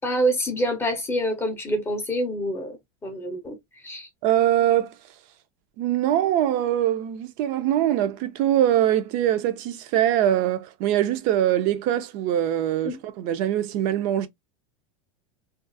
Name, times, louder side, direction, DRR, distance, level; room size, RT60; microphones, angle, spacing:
voice 1, 0.0-3.6 3.8-4.1 12.8-13.0, equal, 10° left, 0.5 m, -26 dB
voice 2, 4.2-4.9 5.8-14.3, right 11 dB, 45° right, 0.4 m, -23 dB
2.4 x 2.3 x 2.6 m
supercardioid pair, 150°, 18 cm